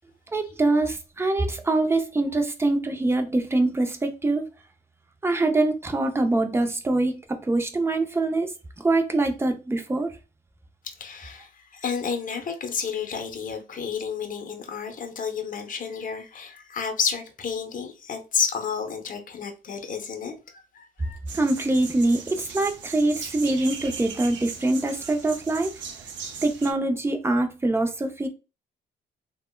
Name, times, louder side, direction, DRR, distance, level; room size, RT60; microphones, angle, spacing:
voice 1, 0.3-4.4 5.2-10.1 21.3-25.7 26.4-28.3, right 2 dB, 10° right, 0.5 m, -24 dB
voice 2, 11.0-20.3 20.7-21.2, left 6 dB, 40° left, 0.7 m, -31 dB
sound 1, 21.3-26.7, right 6 dB, 70° right, 0.6 m, -38 dB
3.4 x 2.1 x 2.2 m
cardioid pair, 90°, 20 cm